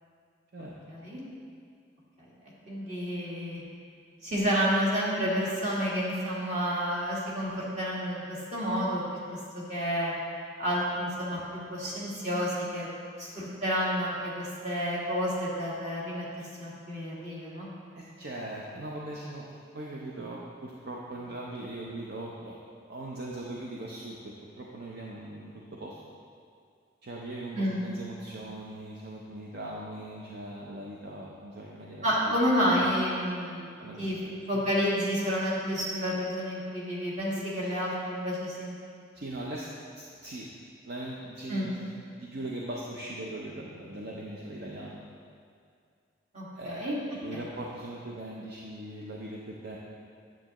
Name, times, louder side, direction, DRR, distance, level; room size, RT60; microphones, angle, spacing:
voice 1, 0.9-1.2 2.7-3.6 4.2-9.0 9.3-10.1 10.6-11.4 11.7-12.9 13.2-16.2 16.6-17.7 27.5-27.8 32.0-33.7 34.0-34.2 34.5-38.8 41.5-41.7 46.3-47.0 47.3-47.4, equal, 40° right, -6 dB, 1.8 m, -30 dB
voice 2, 17.9-22.6 22.9-26.0 27.0-32.8 33.8-34.6 37.6-37.8 39.1-39.7 40.0-40.5 40.8-41.9 42.2-45.0 46.6-49.8, right 1 dB, 60° right, -3 dB, 0.7 m, -40 dB
9.2 x 7.3 x 3.0 m, 2.3 s
head